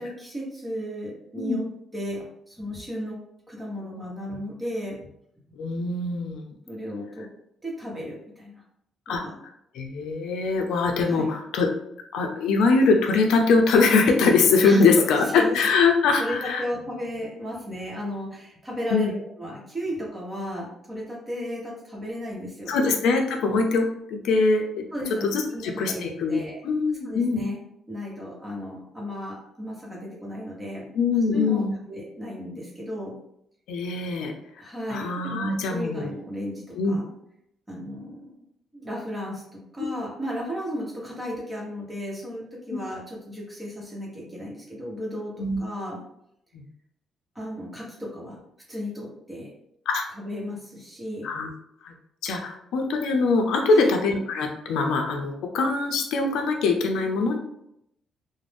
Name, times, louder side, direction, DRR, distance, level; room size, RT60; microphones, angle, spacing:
voice 1, 0.0-1.7 1.9-3.2 3.5-5.1 6.7-7.3 7.6-8.6 9.1-9.4 11.1-11.3 14.6-15.0 15.3-15.6 16.2-22.8 24.9-26.6 27.0-27.6 27.9-33.1 34.6-37.1 37.7-38.4 38.7-45.3 45.6-46.0 47.3-48.4 48.7-49.5 50.1-51.3 53.7-53.9, equal, 15° right, -3 dB, 1.0 m, -34 dB
voice 2, 5.6-6.5 9.1-9.2 9.7-11.7 12.1-16.6 18.9-19.1 22.7-24.8 25.2-27.4 30.9-31.7 33.7-34.3 34.9-36.1 36.8-37.0 39.8-39.9 42.7-42.8 45.4-45.6 46.5-46.6 49.9-50.0 51.2-51.5 51.8-51.9 52.2-57.4, left 4 dB, 85° left, 3 dB, 0.5 m, -22 dB
2.5 x 2.1 x 3.3 m, 0.76 s
cardioid pair, 110°, 0 cm